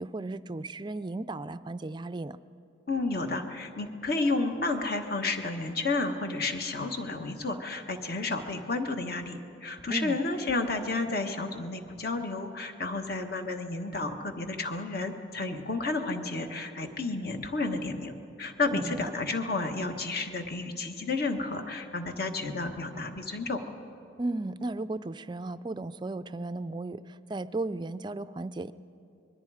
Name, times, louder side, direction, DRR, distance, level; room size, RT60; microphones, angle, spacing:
voice 1, 0.0-2.4 9.9-10.2 18.7-19.1 24.2-28.7, right 2 dB, 25° right, 13 dB, 0.4 m, -35 dB
voice 2, 2.9-23.6, left 3 dB, 50° left, 5 dB, 1.4 m, -31 dB
26.0 x 21.5 x 4.9 m, 2.6 s
head